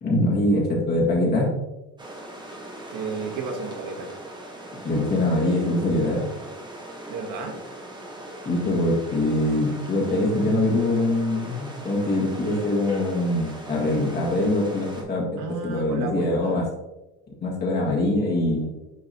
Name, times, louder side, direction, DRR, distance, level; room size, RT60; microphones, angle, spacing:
voice 1, 0.0-1.5 4.8-6.2 8.5-16.7 17.4-18.7, left 1 dB, 35° left, -4 dB, 1.8 m, -23 dB
sound 1, 2.0-15.0, right 1 dB, 15° right, 1.0 m, -40 dB
voice 2, 2.9-4.1 7.1-7.6 15.4-16.6, right 4 dB, 80° right, 4 dB, 1.1 m, -32 dB
9.6 x 3.5 x 2.8 m, 1.0 s
cardioid pair, 140°, 30 cm